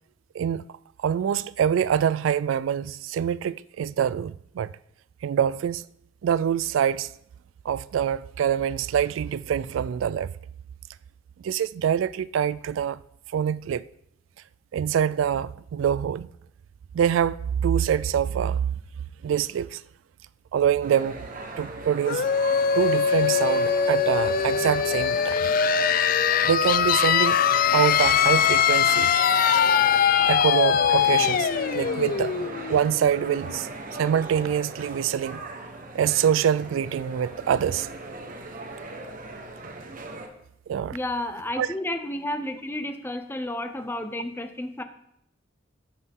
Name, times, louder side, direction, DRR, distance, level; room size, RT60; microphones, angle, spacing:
voice 1, 1.0-4.7 5.2-5.8 6.2-7.1 7.6-10.3 11.4-13.0 13.3-13.9 14.7-16.3 16.9-18.7 19.2-19.8 20.5-21.2 21.6-22.2 22.7-25.5 26.4-27.4 27.7-29.1 30.3-32.4 32.7-33.7 34.0-35.4 35.9-37.9 40.7-41.0 41.6-41.7, right 8 dB, 90° right, 0.3 m, -25 dB
sound 1, 20.8-40.3, right 2 dB, 45° right, 1.1 m, -38 dB
sound 2, 22.1-33.6, left 8 dB, 45° left, 0.4 m, -22 dB
voice 2, 40.9-44.8, left 1 dB, 10° left, 0.7 m, -31 dB
13.5 x 6.4 x 3.6 m
head